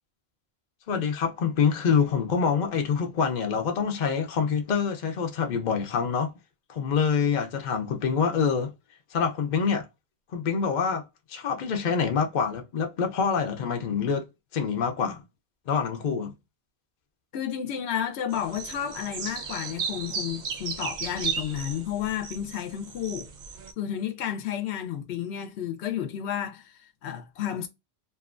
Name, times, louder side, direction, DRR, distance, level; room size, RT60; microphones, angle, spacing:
voice 1, 0.9-6.3 6.7-8.7 9.1-9.8 10.3-11.0 11.3-14.3 14.5-15.2 15.7-16.3, left 6 dB, 50° left, 0.7 m, -26 dB
voice 2, 17.3-23.3 23.8-27.7, left 10 dB, 85° left, 0.9 m, -32 dB
sound 1, 18.3-23.7, right 5 dB, 55° right, 0.6 m, -35 dB
2.7 x 2.2 x 2.4 m
omnidirectional pair, 1.1 m